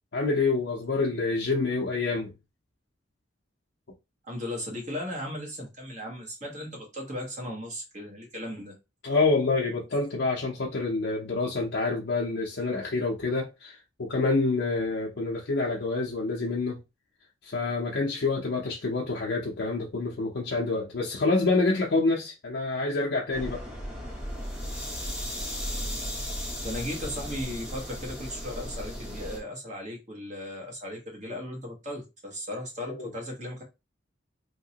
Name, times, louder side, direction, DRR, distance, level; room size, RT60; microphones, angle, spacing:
voice 1, 0.1-2.3 9.0-16.8 17.4-23.6 32.9-33.1, left 3 dB, 60° left, 0.6 m, -27 dB
voice 2, 4.3-8.8 26.6-33.6, left 1 dB, 40° right, 1.3 m, -36 dB
sound 1, 23.3-29.4, equal, 5° right, 0.9 m, -35 dB
3.0 x 2.9 x 2.8 m
head